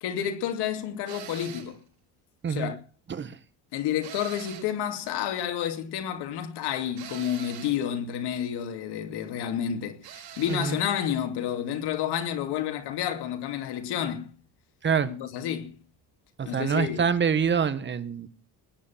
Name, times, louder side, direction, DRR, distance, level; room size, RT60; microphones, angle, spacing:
voice 1, 0.0-1.8 2.5-2.8 3.7-14.3 15.0-15.7 16.4-17.0, left 9 dB, 90° left, 2.7 m, -30 dB
sound 1, 1.1-1.8 4.0-4.8 7.0-7.8 10.0-10.8, right 11 dB, 70° right, 5.8 m, -43 dB
voice 2, 10.5-10.8 14.8-15.1 16.4-18.3, right 6 dB, 30° right, 1.3 m, -26 dB
20.0 x 9.5 x 7.3 m
cardioid pair, 160°, 39 cm